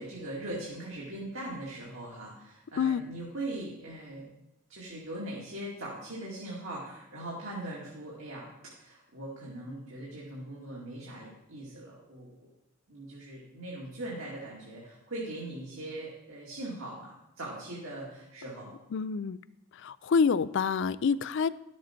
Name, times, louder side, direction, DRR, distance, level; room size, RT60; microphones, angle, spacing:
voice 1, 0.0-4.2 4.7-12.5 12.9-18.7, right 1 dB, 70° right, -5 dB, 2.1 m, -40 dB
voice 2, 18.9-19.4 19.8-21.5, left 5 dB, 55° left, 17 dB, 0.3 m, -27 dB
12.0 x 7.4 x 4.4 m, 0.90 s
head